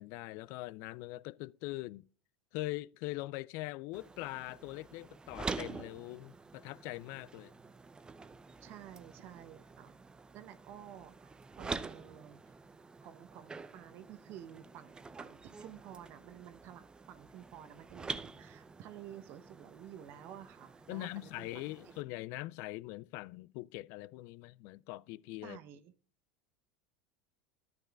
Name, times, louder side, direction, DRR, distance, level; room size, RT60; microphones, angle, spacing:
voice 1, 0.0-2.1 2.5-7.5 20.9-25.6, left 19 dB, 55° left, 0.3 m, -42 dB
sound 1, 3.9-22.0, right 4 dB, 15° right, 0.6 m, -47 dB
voice 2, 8.6-9.9 10.3-12.4 13.0-21.9 25.4-25.8, right 11 dB, 50° right, 0.8 m, -51 dB
13.0 x 9.2 x 2.4 m
hypercardioid pair, 85°, 5 cm